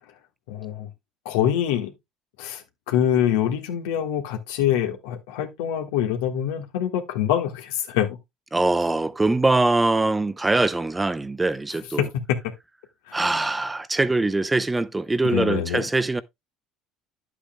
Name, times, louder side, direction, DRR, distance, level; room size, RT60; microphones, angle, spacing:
voice 1, 0.5-0.9 1.2-1.9 2.4-8.2 12.0-12.1 13.1-13.2 15.3-15.8, left 10 dB, 80° left, 1.4 m, -25 dB
voice 2, 8.5-12.1 13.1-16.2, right 2 dB, 15° right, 0.6 m, -22 dB
10.0 x 8.3 x 2.2 m
hypercardioid pair, 75°, 0 cm